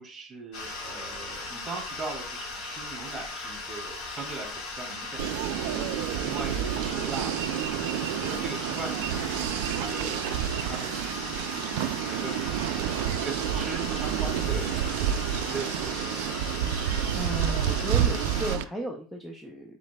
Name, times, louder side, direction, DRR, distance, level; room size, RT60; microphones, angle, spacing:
voice 1, 0.0-5.3 5.6-5.8 6.2-7.4 7.7-12.7 13.1-16.3, right 3 dB, 25° right, 2 dB, 2.3 m, -40 dB
sound 1, 0.5-18.6, left 3 dB, 55° left, 1.6 m, -38 dB
sound 2, 5.2-18.6, right 10 dB, 70° right, 0.3 m, -29 dB
voice 2, 17.1-19.8, right 1 dB, ahead, 1 dB, 0.6 m, -35 dB
5.0 x 4.0 x 2.2 m, 0.40 s
supercardioid pair, 120°, 0 cm